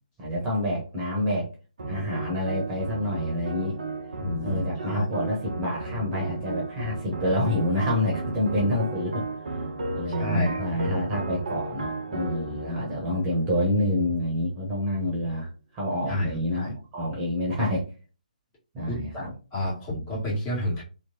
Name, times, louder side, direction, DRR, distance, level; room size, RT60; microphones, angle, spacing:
voice 1, 0.2-1.5 1.9-3.7 4.4-9.6 9.9-15.5 15.7-17.9 18.7-19.3, left 1 dB, 20° right, -3 dB, 1.1 m, -27 dB
sound 1, 1.8-14.3, right 2 dB, 60° right, 0.7 m, -34 dB
voice 2, 4.1-5.1 9.6-9.7 10.2-10.9 14.9-15.0 16.1-16.7 18.9-19.2 19.5-20.8, left 1 dB, 20° left, -6 dB, 1.7 m, -30 dB
3.1 x 3.1 x 2.8 m, 0.33 s
figure-of-eight pair, 135°, 5 cm